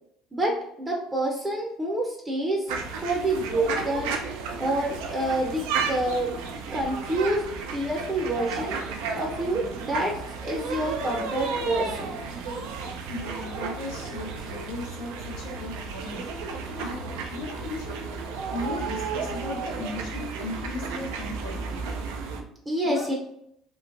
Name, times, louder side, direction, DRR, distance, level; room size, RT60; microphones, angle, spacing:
voice 1, 0.3-2.7 3.0-4.2 4.6-6.3 6.7-7.5 7.7-8.8 9.1-10.1 10.4-12.1 22.7-23.1, right 1 dB, 20° right, 0 dB, 0.6 m, -27 dB
sound 1, 2.7-22.4, right 5 dB, 85° right, 0.4 m, -33 dB
voice 2, 13.1-16.2 16.8-17.0 17.3-18.0 18.5-22.0 22.8-23.1, left 2 dB, 90° left, -3 dB, 0.8 m, -36 dB
3.0 x 2.1 x 2.4 m, 0.72 s
supercardioid pair, 80°, 0 cm